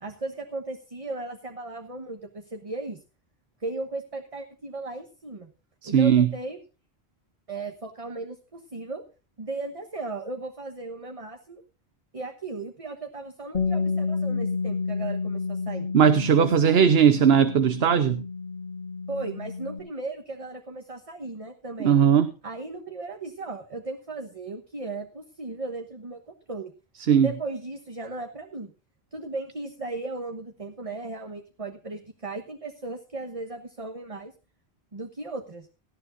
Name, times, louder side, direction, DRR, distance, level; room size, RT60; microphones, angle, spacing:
voice 1, 0.0-3.0 3.6-5.5 5.8-6.6 7.5-9.0 9.4-11.6 12.1-15.9 16.6-16.8 19.1-22.0 22.4-26.7 27.2-28.7 29.1-34.3 34.9-35.7, right 3 dB, 35° right, 1.3 m, -36 dB
voice 2, 5.8-6.3 15.9-18.2 21.8-22.3 27.1-27.3, right 8 dB, 75° right, 1.1 m, -18 dB
Bass guitar, 13.5-19.8, left 4 dB, 55° left, 2.2 m, -30 dB
18.0 x 14.0 x 2.6 m
omnidirectional pair, 1.1 m